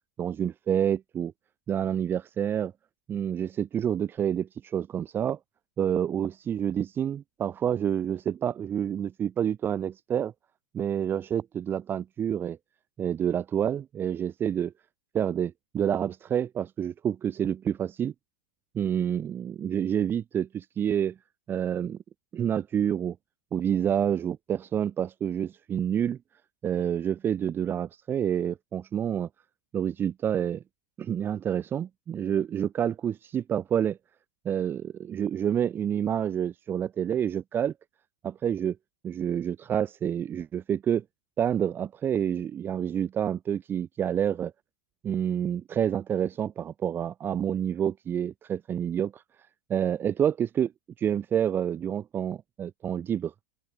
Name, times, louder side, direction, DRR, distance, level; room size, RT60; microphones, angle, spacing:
voice 1, 0.2-1.3 1.7-2.7 3.1-5.4 5.8-10.3 10.7-12.6 13.0-14.7 15.1-18.1 18.7-21.1 21.5-22.0 22.3-23.2 23.5-26.2 26.6-29.3 29.7-30.6 31.0-34.0 34.4-37.7 38.2-38.8 39.0-41.0 41.4-44.5 45.0-49.2 49.7-50.7 51.0-53.3, right 9 dB, 20° right, 1.1 m, -28 dB
open air
hypercardioid pair, 125°, 10 cm